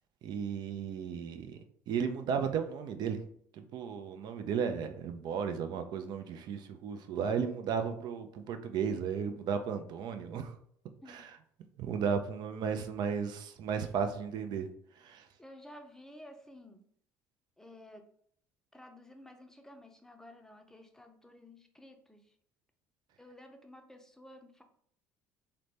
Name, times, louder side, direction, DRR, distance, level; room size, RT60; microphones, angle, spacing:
voice 1, 0.2-3.2 3.5-10.6 11.1-11.3 11.8-14.7 14.9-15.3, right 6 dB, 60° right, 7 dB, 0.5 m, -34 dB
voice 2, 15.4-16.8 17.6-18.1 18.7-22.4 23.2-24.6, left 1 dB, 5° left, 5 dB, 0.6 m, -53 dB
3.8 x 2.2 x 3.2 m, 0.63 s
hypercardioid pair, 70°, 8 cm